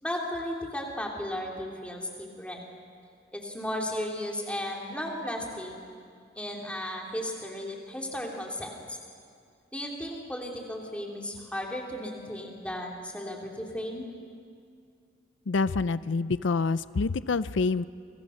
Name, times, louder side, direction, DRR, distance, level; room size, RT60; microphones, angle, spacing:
voice 1, 0.0-2.6 3.3-5.7 6.3-9.0 9.7-14.1, left 1 dB, 5° left, -1 dB, 3.2 m, -35 dB
voice 2, 15.5-17.9, left 4 dB, 80° left, 15 dB, 0.5 m, -27 dB
29.0 x 24.5 x 6.5 m, 2.3 s
head